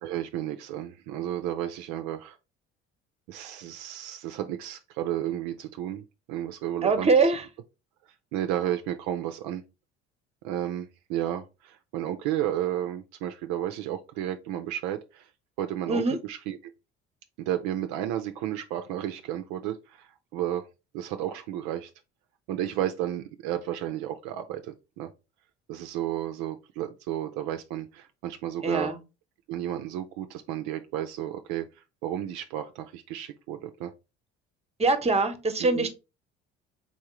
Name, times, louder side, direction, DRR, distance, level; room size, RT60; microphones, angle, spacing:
voice 1, 0.0-2.4 3.3-7.1 8.3-9.6 10.4-15.3 15.6-16.6 17.4-20.6 20.9-21.9 22.5-25.1 25.7-28.9 29.5-31.7 32.0-33.9 35.6-35.9, right 12 dB, 65° right, 0.5 m, -32 dB
voice 2, 6.8-7.4 15.9-16.2 28.6-29.0 34.8-35.9, right 3 dB, 20° right, 0.9 m, -23 dB
4.2 x 3.6 x 3.0 m
hypercardioid pair, 60°, 31 cm